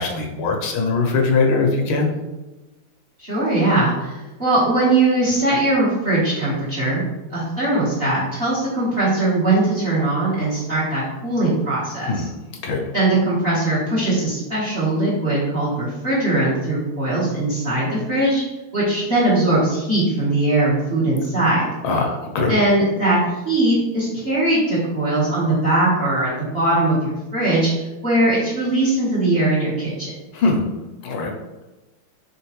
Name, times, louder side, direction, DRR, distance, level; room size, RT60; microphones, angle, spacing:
voice 1, 0.0-2.1 12.1-12.3 12.6-12.8 21.8-22.5 30.3-30.7 31.0-31.3, left 3 dB, 80° left, 1 dB, 1.5 m, -21 dB
voice 2, 3.2-7.0 7.3-12.3 12.9-18.4 18.7-21.7 22.5-23.2 23.4-30.1, right 2 dB, 35° right, -8 dB, 1.0 m, -20 dB
3.8 x 3.6 x 2.9 m, 1.1 s
omnidirectional pair, 2.4 m